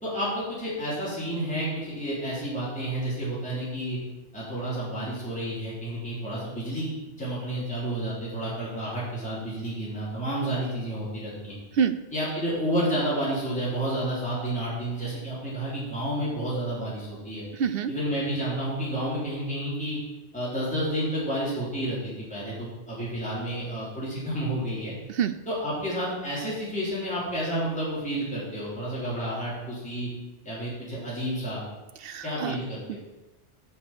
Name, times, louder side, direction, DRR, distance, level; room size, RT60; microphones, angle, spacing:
voice 1, 0.0-4.0 4.3-6.9 7.2-11.5 12.1-17.4 17.9-20.0 20.3-24.9 25.5-30.1 30.4-31.6 32.2-33.0, right 1 dB, 5° left, -9 dB, 3.5 m, -30 dB
voice 2, 17.5-17.9 25.1-25.3 32.0-32.6, right 7 dB, 65° right, 12 dB, 0.7 m, -26 dB
8.4 x 7.0 x 6.0 m, 1.1 s
omnidirectional pair, 1.2 m